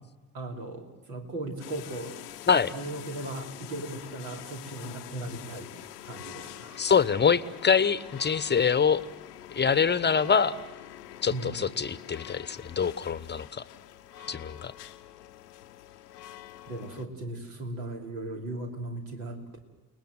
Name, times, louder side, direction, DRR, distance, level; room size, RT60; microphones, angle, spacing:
voice 1, 0.3-2.2 2.7-5.7 6.0-6.8 11.3-11.6 14.1-14.3 16.7-19.6, right 2 dB, 70° right, 2 dB, 3.1 m, -37 dB
sound 1, 1.6-17.1, left 12 dB, 80° left, 0.8 m, -46 dB
voice 2, 6.8-9.0 9.5-10.6 11.2-13.6 14.3-14.7, left 6 dB, 20° left, 18 dB, 1.0 m, -24 dB
29.5 x 19.5 x 7.9 m, 1.2 s
figure-of-eight pair, 45°, 47 cm